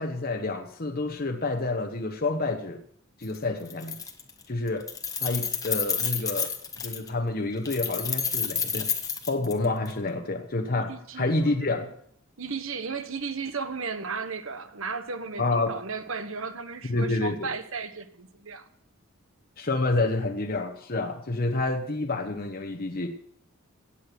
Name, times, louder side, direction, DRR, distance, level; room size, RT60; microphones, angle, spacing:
voice 1, 0.0-2.8 3.2-4.0 4.5-4.9 5.2-8.9 9.3-11.9 15.4-15.7 16.9-17.5 19.6-23.1, left 2 dB, 45° left, 5 dB, 1.0 m, -28 dB
Keys jangling, 3.2-3.4 3.7-4.4 4.7-7.1 7.6-9.9, left 6 dB, 15° left, 1.1 m, -30 dB
voice 2, 10.7-11.6 12.4-18.7, right 5 dB, 65° right, 10 dB, 1.2 m, -35 dB
16.5 x 8.7 x 6.1 m, 0.65 s
head